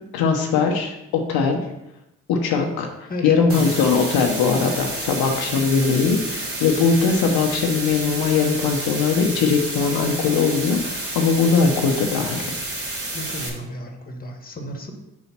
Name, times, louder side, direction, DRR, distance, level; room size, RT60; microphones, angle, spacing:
voice 1, 0.1-1.6 2.3-12.5, left 5 dB, 75° left, 2 dB, 0.8 m, -20 dB
voice 2, 3.1-3.8 13.1-14.9, left 1 dB, 25° left, 3 dB, 1.4 m, -33 dB
sound 1, 3.5-13.5, right 2 dB, 40° right, 2.2 m, -30 dB
4.8 x 4.1 x 5.8 m, 0.90 s
supercardioid pair, 55°, 37 cm